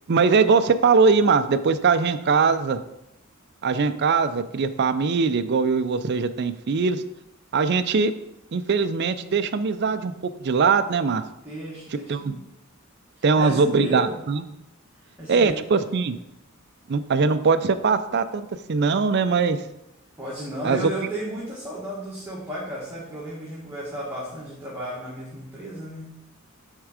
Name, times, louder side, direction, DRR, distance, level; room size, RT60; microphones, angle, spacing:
voice 1, 0.1-2.8 3.6-7.0 7.5-8.1 8.5-10.1 10.4-11.2 12.1-12.4 13.2-14.4 15.3-16.2 16.9-19.6 20.6-20.9, right 5 dB, 50° right, 11 dB, 0.4 m, -21 dB
voice 2, 11.4-12.4 13.1-14.2 15.2-15.6 20.2-26.1, right 1 dB, 10° right, -8 dB, 1.4 m, -34 dB
8.1 x 3.7 x 4.9 m, 0.87 s
head